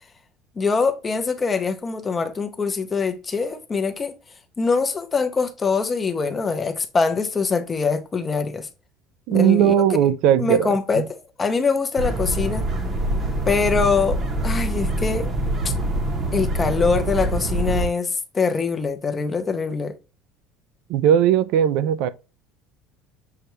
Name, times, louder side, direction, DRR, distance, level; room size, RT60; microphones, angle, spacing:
voice 1, 0.6-4.1 4.6-8.7 9.3-9.7 10.4-12.7 13.5-15.3 15.6-15.7 16.3-19.9, left 5 dB, 15° left, 0.5 m, -23 dB
voice 2, 9.3-11.1 20.9-22.1, right 10 dB, 60° right, 0.3 m, -18 dB
sound 1, 12.0-17.9, right 1 dB, 30° right, 0.7 m, -25 dB
6.5 x 2.2 x 2.9 m
cardioid pair, 160°, 0 cm